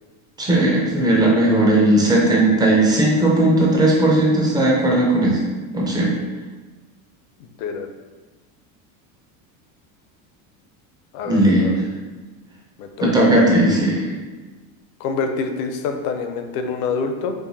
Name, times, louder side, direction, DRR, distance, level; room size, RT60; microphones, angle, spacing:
voice 1, 0.4-5.4 5.7-6.1 11.2-11.7 13.0-14.0, right 1 dB, 10° right, -3 dB, 0.3 m, -17 dB
voice 2, 7.4-7.9 11.1-11.7 12.8-13.1 15.0-17.3, left 5 dB, 65° left, 5 dB, 0.6 m, -26 dB
4.7 x 2.5 x 2.7 m, 1.2 s
cardioid pair, 150°, 43 cm